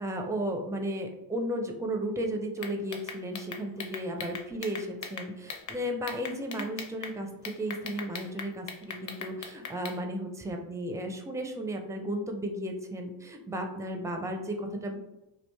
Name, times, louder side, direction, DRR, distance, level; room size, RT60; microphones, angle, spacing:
voice 1, 0.0-15.0, right 1 dB, 5° right, 3 dB, 0.4 m, -34 dB
sound 1, 2.6-5.8 6.1-7.1 7.4-10.0, left 6 dB, 35° left, 0.7 m, -39 dB
3.1 x 2.4 x 3.4 m, 0.96 s
supercardioid pair, 85°, 50 cm